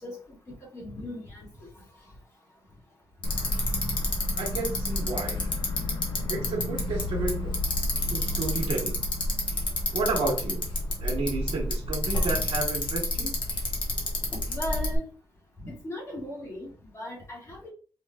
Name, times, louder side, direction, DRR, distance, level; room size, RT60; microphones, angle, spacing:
voice 1, 0.7-1.7 12.2-12.5 14.3-15.0 15.6-16.7 16.9-17.7, left 1 dB, 30° left, -4 dB, 2.1 m, -37 dB
Bicycle, 3.2-15.0, left 2 dB, 55° left, 1.3 m, -29 dB
voice 2, 4.4-5.4 6.3-7.6 8.1-9.0 9.9-10.6 11.0-13.4, right 3 dB, 85° right, -5 dB, 1.4 m, -31 dB
5.3 x 3.1 x 2.3 m, 0.38 s
wide cardioid pair, 145°, 10 cm